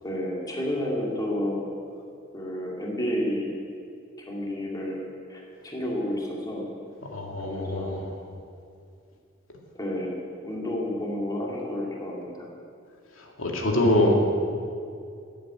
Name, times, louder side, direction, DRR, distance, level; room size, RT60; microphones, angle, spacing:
voice 1, 0.0-1.6 2.3-3.5 4.3-6.7 7.5-8.0 9.7-12.5, left 1 dB, 20° left, -2 dB, 2.5 m, -31 dB
voice 2, 7.1-8.1 13.4-14.1, left 1 dB, 85° left, 0 dB, 2.3 m, -24 dB
13.5 x 8.7 x 9.3 m, 2.4 s
head